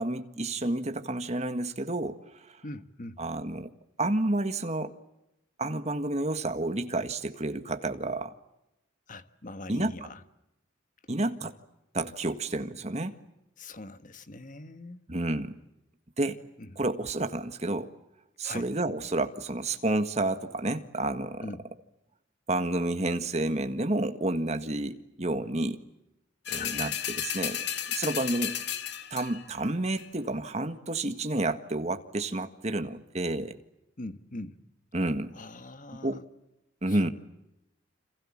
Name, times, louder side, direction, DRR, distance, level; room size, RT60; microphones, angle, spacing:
voice 1, 0.0-2.6 3.2-3.7 4.0-4.9 5.6-8.3 9.7-9.9 11.1-11.5 11.9-13.2 15.1-15.6 16.2-16.4 16.8-17.9 18.4-21.5 22.5-25.8 26.5-27.6 27.9-28.6 29.1-33.6 34.9-35.3 36.0-36.2 36.8-37.1, right 2 dB, 35° right, 1.7 m, -30 dB
voice 2, 2.6-3.2 9.1-10.2 13.6-15.0 16.6-16.7 18.4-18.7 21.4-21.7 26.5-27.0 34.0-34.6 35.3-36.2 36.9-37.0, left 2 dB, 40° left, 1.5 m, -42 dB
sound 1, 26.5-29.5 30.0-30.1, left 10 dB, 55° left, 1.9 m, -33 dB
29.0 x 27.0 x 7.4 m
head